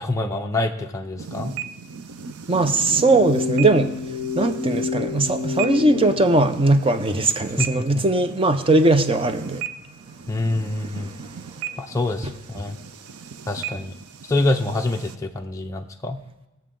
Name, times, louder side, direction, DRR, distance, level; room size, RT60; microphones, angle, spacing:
voice 1, 0.0-1.5 7.6-8.0 10.3-11.1 11.8-12.8 13.5-13.9 14.3-16.2, left 2 dB, 15° left, 2 dB, 0.6 m, -26 dB
sound 1, 1.2-15.2, right 7 dB, 80° right, 0.6 m, -37 dB
voice 2, 2.5-3.9 4.3-9.6 10.6-11.1 12.2-12.3, right 2 dB, 25° right, 9 dB, 0.7 m, -20 dB
sound 2, 2.9-6.1, left 4 dB, 60° right, 1.5 m, -28 dB
20.5 x 7.5 x 3.8 m, 1.0 s
head